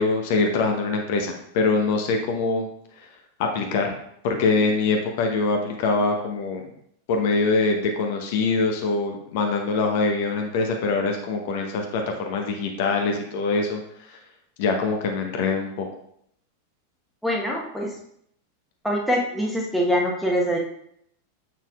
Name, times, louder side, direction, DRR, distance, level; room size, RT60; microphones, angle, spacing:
voice 1, 0.0-2.7 3.4-3.9 4.2-6.7 7.1-13.8 14.1-14.2 14.6-15.9, left 3 dB, 50° left, 3 dB, 0.9 m, -23 dB
voice 2, 17.2-17.9 18.8-20.6, equal, ahead, -3 dB, 1.1 m, -24 dB
7.2 x 6.0 x 2.4 m, 0.71 s
figure-of-eight pair, 90°, 0 cm